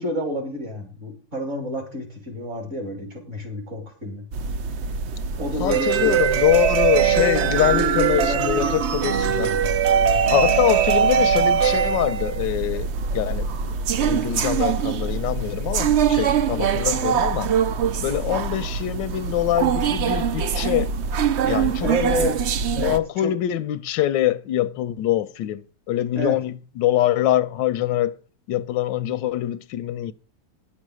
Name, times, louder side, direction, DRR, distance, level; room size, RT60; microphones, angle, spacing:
voice 1, 0.0-4.2 5.4-6.2 7.4-10.2 21.8-22.4 22.7-23.3 26.1-26.4, equal, 40° right, 3.1 m, -30 dB
sound 1, 4.3-23.0, right 7 dB, 75° right, 0.6 m, -22 dB
voice 2, 5.6-9.5 10.3-13.7 14.0-17.5 18.0-20.9 21.5-22.3 22.8-28.2 28.5-30.1, left 13 dB, 85° left, 1.4 m, -24 dB
10.0 x 6.5 x 6.3 m
omnidirectional pair, 1.9 m